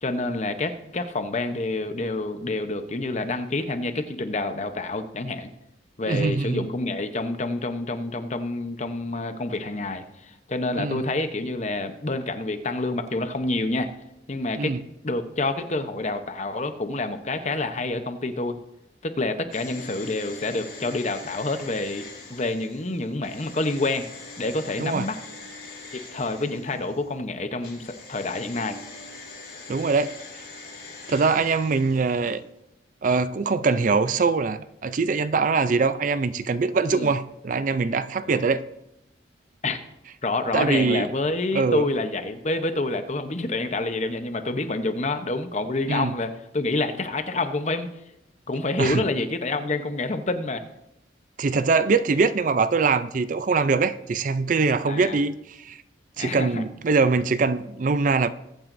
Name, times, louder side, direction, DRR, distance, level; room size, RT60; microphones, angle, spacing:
voice 1, 0.0-5.5 6.0-13.9 14.3-14.8 15.0-18.6 19.0-24.1 24.4-25.2 25.9-28.8 36.9-37.1 38.2-38.4 39.6-39.8 40.2-47.9 48.5-50.6 54.9-55.2 56.2-56.6, left 2 dB, 40° left, 0.8 m, -28 dB
voice 2, 6.1-6.7 10.8-11.0 14.6-14.8 24.8-25.1 29.7-30.2 31.1-32.4 33.0-38.7 40.5-41.1 41.5-41.8 45.9-46.1 48.8-49.0 51.4-55.8 56.2-58.3, right 4 dB, 45° right, 0.4 m, -23 dB
sound 1, 19.5-27.1 27.6-32.3 32.6-32.7, left 3 dB, 55° left, 4.5 m, -43 dB
21.5 x 8.9 x 2.6 m
head